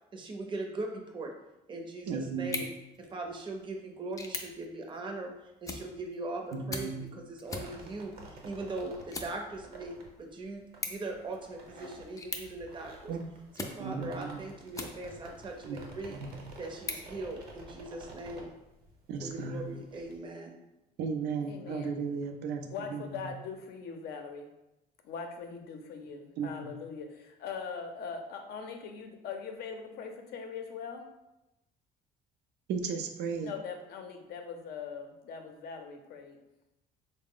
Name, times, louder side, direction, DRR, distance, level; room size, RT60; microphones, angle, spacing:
voice 1, 0.1-1.3 1.7-2.7 3.0-13.1 13.5-16.2 16.6-18.5 19.2-20.6, right 2 dB, 30° right, 3 dB, 0.6 m, -40 dB
voice 2, 2.1-2.6 6.5-7.0 13.1-13.3 13.8-14.5 15.6-15.8 16.1-16.3 19.1-19.7 21.0-23.3 26.4-26.7 32.7-33.5, right 5 dB, 80° right, 5 dB, 0.5 m, -35 dB
sound 1, 2.4-15.4 15.9-17.9, left 3 dB, 20° left, 0.4 m, -45 dB
sound 2, 7.4-20.2, right 2 dB, 60° right, 0.9 m, -51 dB
voice 3, 21.5-21.9 22.7-24.5 25.0-31.0 33.4-36.4, left 5 dB, 70° left, 4 dB, 0.6 m, -41 dB
3.7 x 2.0 x 3.7 m, 0.92 s
cardioid pair, 110°, 17 cm